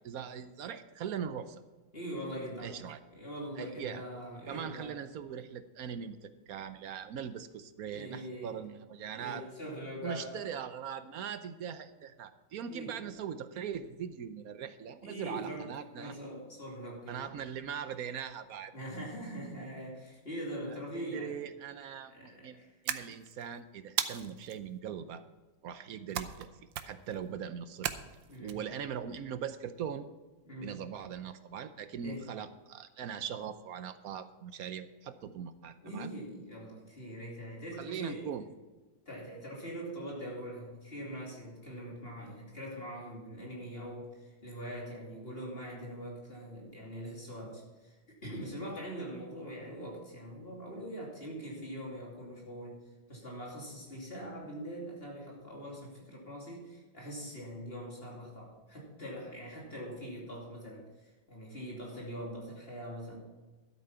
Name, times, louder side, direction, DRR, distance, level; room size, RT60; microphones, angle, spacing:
voice 1, 0.0-1.6 2.6-3.0 3.6-4.0 4.5-9.5 10.0-16.2 17.1-18.7 20.7-25.2 25.6-26.5 26.8-27.9 28.4-30.1 30.6-36.1 37.8-38.5, right 8 dB, 65° right, 11 dB, 1.0 m, -41 dB
voice 2, 1.9-2.8 3.1-4.9 7.9-8.6 9.1-10.4 12.7-13.0 15.0-17.3 18.7-21.4 22.1-22.8 28.3-28.6 30.4-30.8 32.0-32.3 35.8-38.3 39.0-48.0 48.2-52.8 53.1-63.2, equal, 30° left, -3 dB, 2.9 m, -42 dB
sound 1, 22.9-23.5 24.0-24.6 26.1-26.5 26.7-27.1 27.8-28.5, right 10 dB, 90° right, 1.5 m, -35 dB
12.5 x 8.4 x 5.7 m, 1.2 s
omnidirectional pair, 2.0 m